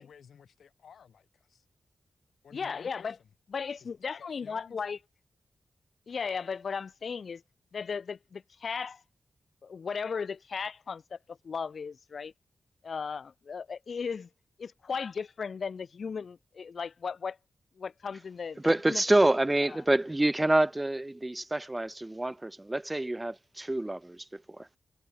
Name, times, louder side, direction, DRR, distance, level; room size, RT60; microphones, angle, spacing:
voice 1, 0.0-1.6 2.4-3.1 3.8-4.8, left 7 dB, 85° left, 2.0 m, -54 dB
voice 2, 2.5-3.2 3.5-5.0 6.1-7.4 7.7-9.0 9.6-12.3 12.8-14.3 14.6-17.4 17.8-18.6 18.9-19.0, left 5 dB, 70° left, 0.4 m, -36 dB
voice 3, 18.6-24.8, right 1 dB, 20° right, 0.7 m, -27 dB
cardioid pair, 50°, 0 cm